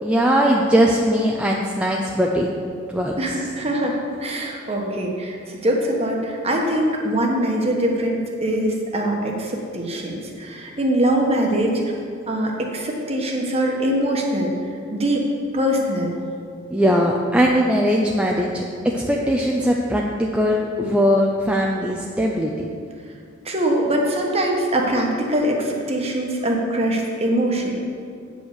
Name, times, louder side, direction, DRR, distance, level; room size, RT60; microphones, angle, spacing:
voice 1, 0.0-2.5 2.9-3.1 16.7-18.6 18.9-22.7, equal, 5° right, -1 dB, 0.5 m, -20 dB
voice 2, 3.2-11.8 12.3-14.5 14.9-15.3 15.5-16.1 23.4-27.7, right 1 dB, 30° right, 0 dB, 1.2 m, -22 dB
8.8 x 5.3 x 6.6 m, 2.3 s
head